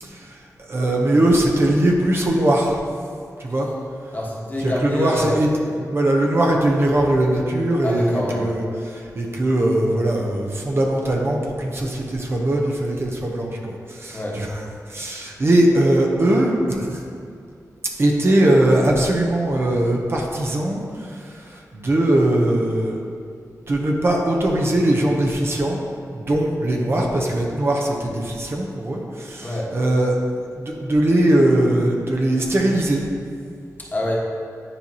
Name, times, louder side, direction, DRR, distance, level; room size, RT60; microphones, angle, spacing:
voice 1, 0.0-2.8 3.4-3.7 4.6-5.5 5.8-14.6 14.9-17.0 18.0-23.0 23.7-25.8 26.1-30.2 30.6-33.0, right 1 dB, 40° right, -1 dB, 0.7 m, -20 dB
voice 2, 4.1-5.3 7.8-8.4 14.1-14.4 29.4-29.7 33.9-34.2, left 1 dB, 30° left, -4 dB, 1.3 m, -25 dB
9.7 x 4.5 x 2.8 m, 2.4 s
wide cardioid pair, 100°, 6 cm